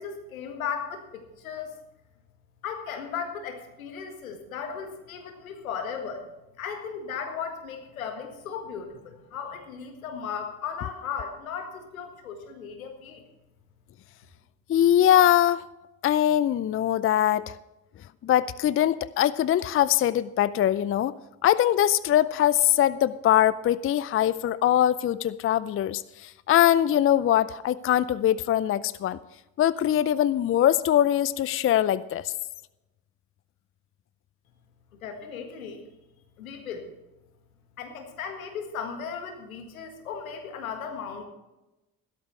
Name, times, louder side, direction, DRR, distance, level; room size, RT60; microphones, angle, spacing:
voice 1, 0.0-1.8 2.6-6.3 6.6-13.2 34.9-35.8 36.4-36.9 37.8-41.3, left 6 dB, 85° left, 5 dB, 1.7 m, -36 dB
voice 2, 14.7-15.6 16.0-17.5 18.2-21.1 21.4-29.2 29.6-32.3, left 11 dB, 35° left, 18 dB, 0.5 m, -22 dB
15.5 x 12.5 x 3.2 m, 1.0 s
hypercardioid pair, 50°, 41 cm